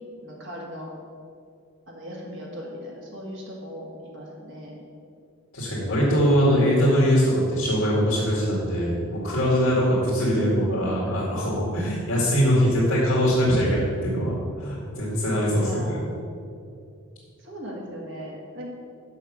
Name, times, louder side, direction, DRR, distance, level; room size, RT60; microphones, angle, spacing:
voice 1, 0.2-0.9 1.9-4.8 10.4-11.2 15.6-16.2 17.4-18.7, equal, 60° right, -2 dB, 1.8 m, -37 dB
voice 2, 5.5-16.0, equal, 60° left, -9 dB, 2.3 m, -22 dB
6.7 x 6.5 x 6.5 m, 2.4 s
head